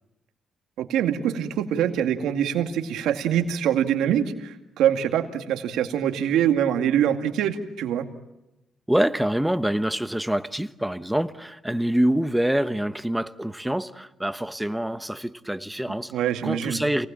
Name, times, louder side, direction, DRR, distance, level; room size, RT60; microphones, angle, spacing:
voice 1, 0.8-8.1 16.1-16.8, right 9 dB, 85° right, 2.2 m, -24 dB
voice 2, 8.9-16.1 16.4-17.1, right 1 dB, 5° right, 1.1 m, -25 dB
28.0 x 19.0 x 8.9 m
cardioid pair, 90°, 0 cm